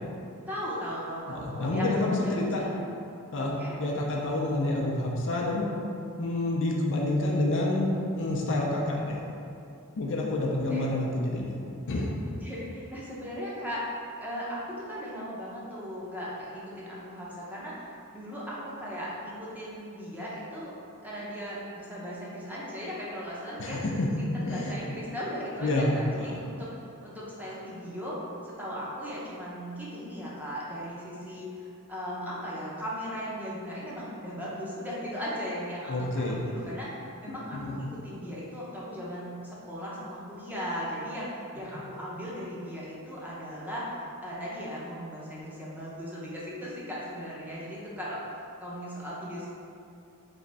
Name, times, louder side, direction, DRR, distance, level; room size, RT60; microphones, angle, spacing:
voice 1, 0.5-1.9 2.2-2.7 3.4-3.8 10.7-10.9 12.4-13.8 14.2-17.8 18.1-20.7 21.0-23.8 24.2-28.2 28.4-37.0 37.2-43.8 44.2-48.2 48.6-49.5, equal, 5° right, -8 dB, 0.7 m, -37 dB
voice 2, 1.3-2.6 3.3-3.5 3.8-5.7 6.2-9.2 10.0-11.6 11.9-12.1 23.6-24.1 24.4-24.8 25.6-26.4 35.9-36.4 37.5-37.8, left 2 dB, 55° left, -2 dB, 0.5 m, -28 dB
3.5 x 3.1 x 4.0 m, 2.6 s
head